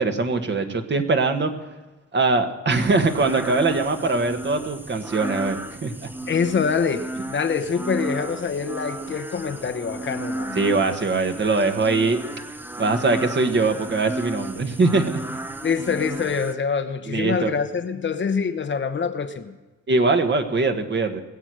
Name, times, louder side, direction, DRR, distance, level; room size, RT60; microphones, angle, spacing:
voice 1, 0.0-1.5 2.1-6.1 10.5-12.2 12.8-15.2 17.1-17.5 19.9-21.2, right 3 dB, 35° right, 6 dB, 1.5 m, -22 dB
sound 1, 2.7-16.5, right 2 dB, 5° right, 0.7 m, -34 dB
voice 2, 6.3-10.6 15.6-19.5, left 6 dB, 40° left, 8 dB, 1.0 m, -25 dB
21.0 x 8.0 x 6.3 m, 1.2 s
cardioid pair, 90°, 30 cm